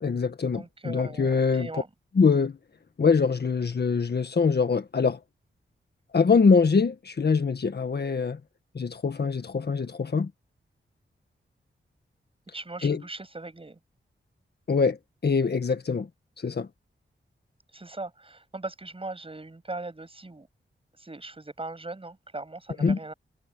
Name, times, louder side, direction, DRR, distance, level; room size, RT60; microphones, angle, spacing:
voice 1, 0.0-1.7 2.2-2.6 3.0-5.2 6.1-8.4 8.8-10.3 12.8-13.0 14.7-15.0 15.2-16.1 16.4-16.7 22.8-23.0, left 5 dB, 55° left, 1.6 m, -23 dB
voice 2, 0.5-1.9 12.5-13.8 17.7-20.5 21.0-23.1, right 2 dB, 25° right, 8.0 m, -39 dB
wide cardioid pair, 85°, 20 cm